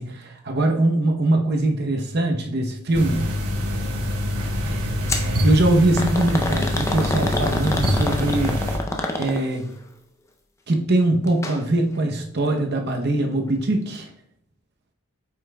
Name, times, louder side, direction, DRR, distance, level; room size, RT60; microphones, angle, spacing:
voice 1, 0.0-3.4 5.4-8.6 9.2-9.7 10.7-14.1, right 2 dB, 45° right, 4 dB, 0.7 m, -22 dB
sound 1, 2.9-8.8, left 1 dB, 85° right, 1.1 m, -25 dB
sound 2, 5.1-5.3 6.0-9.7 11.3-11.6 11.9-12.0 12.9-13.0, left 2 dB, 15° left, 0.4 m, -27 dB
8.0 x 5.6 x 2.2 m, 0.70 s
head